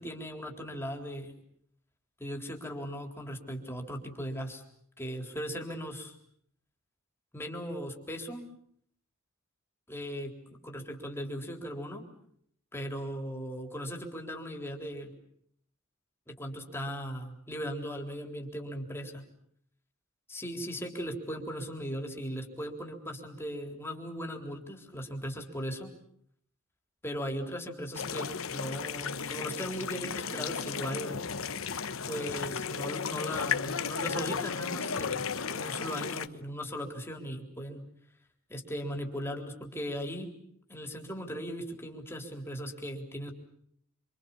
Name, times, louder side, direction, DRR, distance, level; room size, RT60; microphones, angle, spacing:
voice 1, 0.0-1.3 2.2-4.6 5.0-6.1 7.3-8.4 9.9-12.0 12.7-15.1 16.3-19.2 20.3-25.9 27.0-31.2 32.1-37.8 38.5-40.3 40.7-43.3, equal, 10° left, 3 dB, 3.7 m, -38 dB
sound 1, 27.9-36.3, left 6 dB, 70° left, 1.1 m, -34 dB
27.0 x 26.5 x 7.1 m, 0.66 s
head